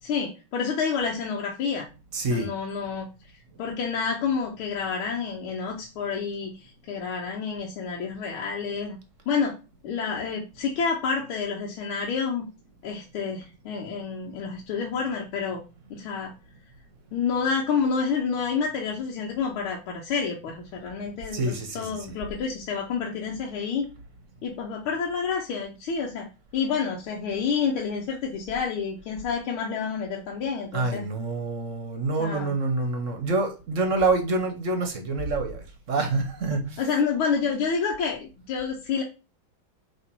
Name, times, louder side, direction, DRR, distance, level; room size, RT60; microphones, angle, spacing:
voice 1, 0.0-1.9 2.3-3.1 3.6-9.0 9.3-9.6 9.8-12.5 12.8-15.6 15.9-16.3 17.1-23.9 24.4-26.3 26.5-31.1 32.2-32.5 36.8-39.0, left 5 dB, 90° left, 1.8 m, -29 dB
voice 2, 2.1-2.5 21.3-22.0 30.7-36.9, right 3 dB, 50° right, 1.0 m, -27 dB
7.9 x 3.0 x 4.5 m
omnidirectional pair, 2.3 m